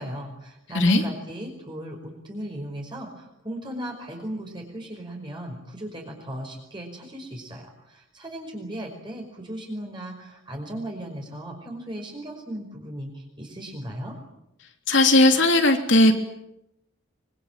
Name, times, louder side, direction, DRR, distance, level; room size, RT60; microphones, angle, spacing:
voice 1, 0.0-14.2, right 1 dB, 25° right, 1 dB, 5.3 m, -37 dB
voice 2, 14.9-16.2, left 1 dB, 65° left, 5 dB, 3.4 m, -17 dB
25.5 x 24.0 x 9.2 m, 0.85 s
head